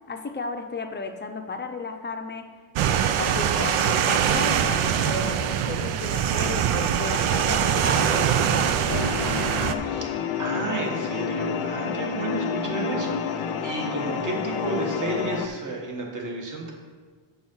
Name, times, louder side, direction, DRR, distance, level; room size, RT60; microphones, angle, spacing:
voice 1, 0.1-2.5 2.9-8.8, left 3 dB, 20° left, 5 dB, 0.5 m, -33 dB
sound 1, 2.8-9.7, right 9 dB, 85° right, 0.7 m, -23 dB
sound 2, 8.9-15.5, left 6 dB, 90° left, 0.8 m, -29 dB
voice 2, 9.8-16.7, right 2 dB, 40° right, -1 dB, 1.7 m, -32 dB
7.0 x 6.7 x 5.5 m, 1.5 s
wide cardioid pair, 165°, 49 cm